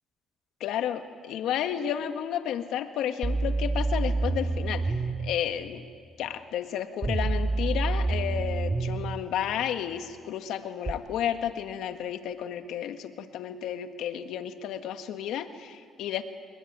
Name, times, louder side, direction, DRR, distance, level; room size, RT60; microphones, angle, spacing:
voice 1, 0.6-5.9 6.2-16.2, left 10 dB, 85° left, 8 dB, 1.7 m, -32 dB
sound 1, 3.2-5.2 7.0-9.0 10.9-11.0, right 3 dB, 25° right, 2.1 m, -27 dB
29.0 x 21.5 x 9.7 m, 2.2 s
cardioid pair, 90°, 0 cm